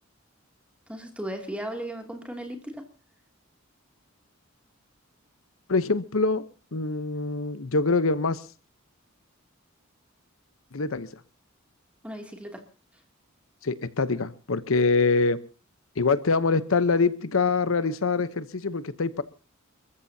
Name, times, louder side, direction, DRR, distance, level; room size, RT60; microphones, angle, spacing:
voice 1, 0.9-2.8 12.0-12.6, right 1 dB, 5° right, 3 dB, 2.6 m, -36 dB
voice 2, 5.7-6.4 6.7-8.4 10.7-11.1 13.6-15.4 16.0-19.2, left 4 dB, 75° left, 14 dB, 0.9 m, -24 dB
29.0 x 14.0 x 2.8 m, 0.35 s
head